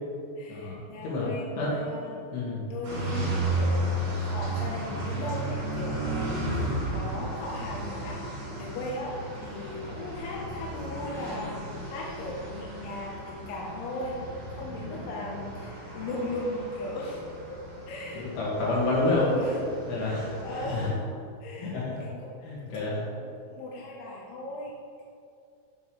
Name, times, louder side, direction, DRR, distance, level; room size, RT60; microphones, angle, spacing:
voice 1, 0.4-2.3 2.7-17.2 17.5-18.3 19.0-21.0 21.4-22.4 22.7-24.8, left 1 dB, 85° left, -3 dB, 3.7 m, -37 dB
voice 2, 2.3-2.7 18.1-19.3 19.9-20.4 20.7-20.9 21.6-22.0 22.4-23.0, left 3 dB, 70° left, -6 dB, 4.3 m, -28 dB
sound 1, 2.8-20.9, right 1 dB, 80° right, 1.7 m, -34 dB
8.6 x 6.9 x 3.2 m, 2.4 s
omnidirectional pair, 5.9 m